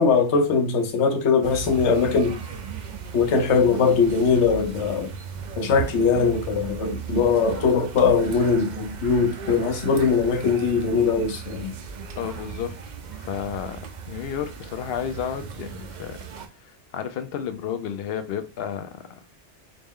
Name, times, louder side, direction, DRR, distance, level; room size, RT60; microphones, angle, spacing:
voice 1, 0.0-2.4 3.1-5.1 5.6-11.7, left 5 dB, 80° left, 1.0 m, -21 dB
sound 1, 1.4-16.5, right 6 dB, 55° right, 0.5 m, -36 dB
voice 2, 12.2-12.8 13.1-16.2 16.6-19.2, left 8 dB, 65° left, 0.7 m, -32 dB
4.0 x 2.1 x 3.5 m
omnidirectional pair, 1.2 m